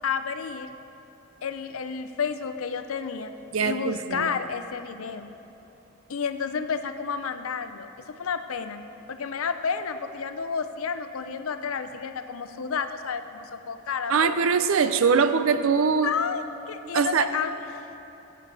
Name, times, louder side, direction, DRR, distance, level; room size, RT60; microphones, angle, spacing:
voice 1, 0.0-0.7 1.4-3.3 3.6-5.3 6.1-8.8 9.1-14.7 16.0-17.8, left 6 dB, 85° left, 10 dB, 0.6 m, -31 dB
voice 2, 3.5-4.3 14.1-16.1 16.9-17.3, right 5 dB, 75° right, 11 dB, 0.5 m, -22 dB
14.5 x 8.5 x 4.0 m, 2.9 s
head